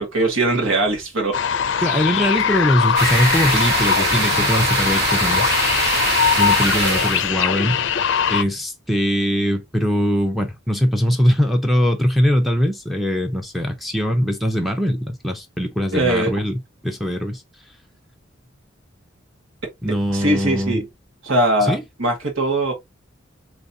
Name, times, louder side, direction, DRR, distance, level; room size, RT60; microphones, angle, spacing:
voice 1, 0.0-1.4 15.9-16.3 20.1-20.8 21.2-22.7, right 1 dB, 80° right, 1.6 m, -20 dB
sound 1, 1.3-8.4, left 7 dB, 65° left, 0.5 m, -21 dB
voice 2, 1.8-5.8 6.4-7.8 8.3-17.4 19.8-20.8 21.7-21.8, equal, ahead, 0.6 m, -21 dB
sound 2, 2.9-7.3, right 3 dB, 55° right, 1.6 m, -22 dB
4.0 x 3.2 x 2.7 m
head